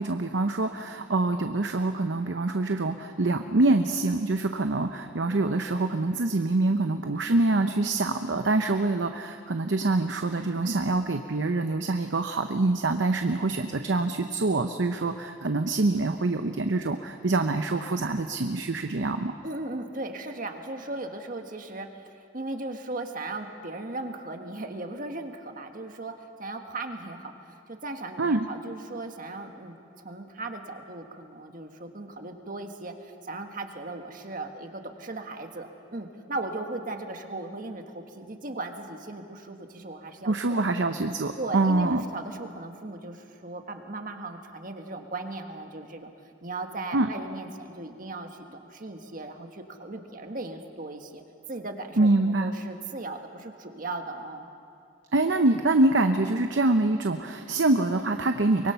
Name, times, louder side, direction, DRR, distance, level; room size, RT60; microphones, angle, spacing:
voice 1, 0.0-19.3 28.2-28.5 40.2-42.0 46.9-47.1 52.0-52.5 55.1-58.7, right 2 dB, 70° right, 7 dB, 0.8 m, -25 dB
voice 2, 19.4-26.1 26.4-40.6 41.4-46.1 46.4-51.2 51.5-54.5, right 2 dB, 45° right, 5 dB, 1.5 m, -37 dB
24.0 x 23.0 x 5.7 m, 2.4 s
head